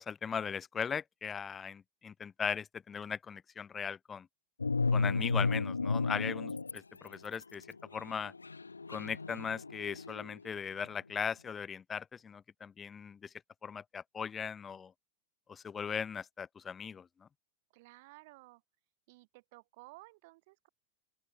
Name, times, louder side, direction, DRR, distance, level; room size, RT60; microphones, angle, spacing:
voice 1, 0.0-4.3 4.9-7.7 7.9-8.3 8.9-13.3 13.6-14.9 15.5-17.3, left 6 dB, 20° left, 0.7 m, -39 dB
sound 1, 4.6-6.8 7.1-10.5, left 4 dB, 80° left, 0.5 m, -33 dB
voice 2, 17.7-18.6 19.1-20.7, right 23 dB, 50° right, 4.5 m, -56 dB
open air
figure-of-eight pair, 90°, 0 cm